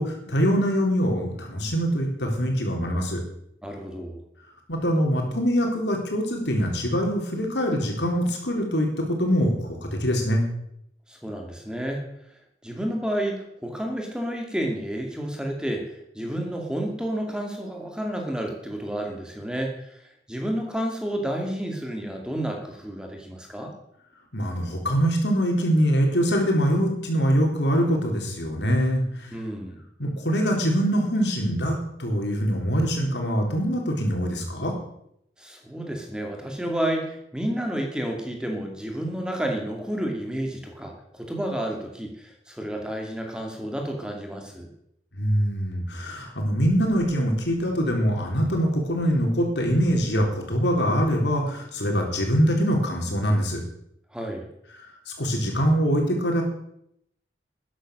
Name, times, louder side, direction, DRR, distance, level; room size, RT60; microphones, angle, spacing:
voice 1, 0.0-3.2 4.7-10.4 24.3-29.3 30.0-34.8 45.2-53.6 55.1-56.4, equal, 85° left, 1 dB, 3.7 m, -23 dB
voice 2, 3.6-4.2 11.1-12.1 12.6-23.7 29.3-29.8 35.4-44.7 54.1-54.5, right 1 dB, 5° right, 2 dB, 2.3 m, -30 dB
12.5 x 10.0 x 6.4 m, 0.75 s
head